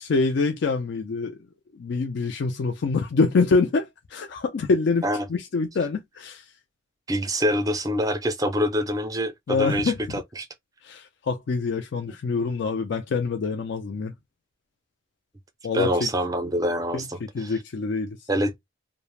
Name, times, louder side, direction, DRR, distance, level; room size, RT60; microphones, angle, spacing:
voice 1, 0.0-1.4 1.7-5.0 5.3-6.4 9.5-10.0 10.8-14.1 15.6-16.1 16.9-17.0 17.3-18.2, left 4 dB, 60° left, 0.4 m, -25 dB
voice 2, 7.1-10.5 12.1-12.2 15.7-17.5 18.3-18.6, equal, 20° right, 0.5 m, -26 dB
2.4 x 2.1 x 3.1 m
head